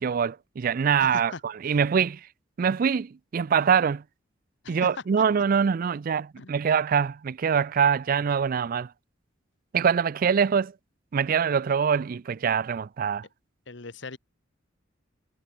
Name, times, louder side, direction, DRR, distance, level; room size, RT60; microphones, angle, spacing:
voice 1, 0.0-2.3 2.6-4.0 4.7-8.9 9.7-10.7 11.1-13.3, right 7 dB, 50° right, 0.4 m, -24 dB
voice 2, 1.0-1.4 4.6-5.0 6.4-6.5 13.7-14.2, left 3 dB, 70° left, 1.3 m, -39 dB
head